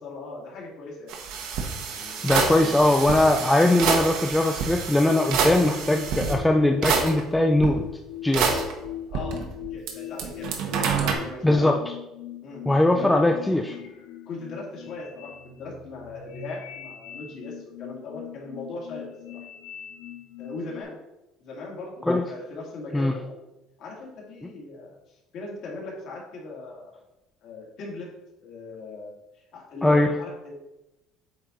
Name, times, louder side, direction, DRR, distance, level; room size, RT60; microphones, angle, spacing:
voice 1, 0.0-1.1 1.9-2.2 9.1-10.5 10.9-11.8 12.4-12.6 12.9-13.2 14.3-19.4 20.4-21.0 21.4-23.3 23.8-26.9 27.4-28.1 28.4-30.5, left 3 dB, 50° left, -4 dB, 2.3 m, -39 dB
sound 1, 1.1-6.3 6.8-7.7 8.3-9.9 10.2-11.1, right 5 dB, 65° right, 1.2 m, -27 dB
voice 2, 2.2-7.8 8.2-8.7 11.4-11.8 12.7-13.8 22.1-22.2 22.9-23.1 29.8-30.1, left 1 dB, 5° left, 3 dB, 0.3 m, -21 dB
sound 2, 5.1-20.8, left 11 dB, 85° left, 1.0 m, -40 dB
8.5 x 4.5 x 3.9 m, 0.95 s
cardioid pair, 170°, 0 cm